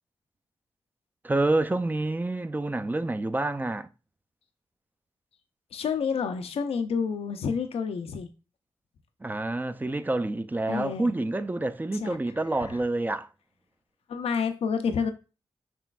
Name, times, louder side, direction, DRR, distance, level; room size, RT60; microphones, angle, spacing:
voice 1, 1.2-3.9 9.2-13.3, right 2 dB, 20° right, 0.4 m, -28 dB
voice 2, 5.7-8.3 10.7-11.1 12.0-12.2 12.5-12.8 14.1-15.1, left 6 dB, 75° left, 0.5 m, -29 dB
6.0 x 3.2 x 2.4 m
cardioid pair, 45°, 10 cm